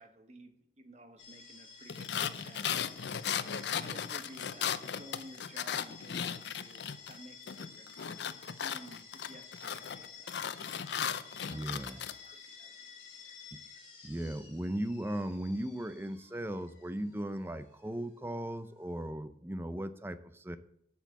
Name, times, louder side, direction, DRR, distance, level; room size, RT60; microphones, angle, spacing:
voice 1, 0.0-3.0 3.8-8.2 8.6-10.3 10.7-10.9 11.4-12.9 13.2-13.4, right 1 dB, 40° right, 6 dB, 1.2 m, -54 dB
sound 1, 1.2-19.0, left 6 dB, 30° left, 3.3 m, -53 dB
sound 2, 1.9-7.2 7.5-12.1, left 8 dB, 80° left, 0.5 m, -36 dB
voice 2, 11.5-12.0 13.5-13.6 14.0-20.6, right 1 dB, 15° right, 12 dB, 0.5 m, -37 dB
8.2 x 6.2 x 7.4 m, 0.71 s
head